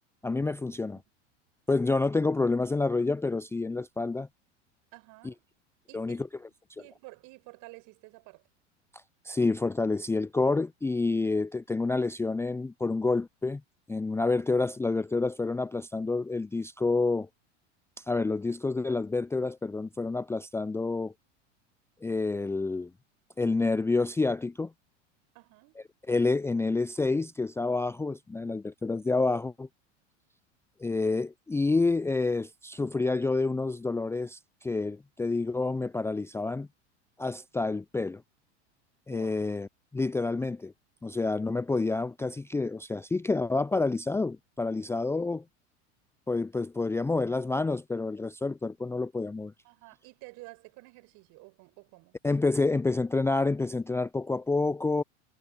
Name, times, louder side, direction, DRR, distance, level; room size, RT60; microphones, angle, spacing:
voice 1, 0.2-1.0 1.7-4.3 5.2-5.3 5.9-6.2 9.2-13.6 13.9-17.3 18.1-21.1 22.0-22.9 23.4-24.7 26.1-29.7 30.8-36.7 37.2-38.2 39.1-40.7 41.0-45.4 46.3-49.5 52.2-55.0, left 3 dB, 5° left, 0.5 m, -28 dB
voice 2, 4.9-5.4 5.9-6.2 6.8-8.4 25.3-25.8 39.1-39.5 49.6-52.2, right 24 dB, 55° right, 5.2 m, -51 dB
hypercardioid pair, 85°, 36 cm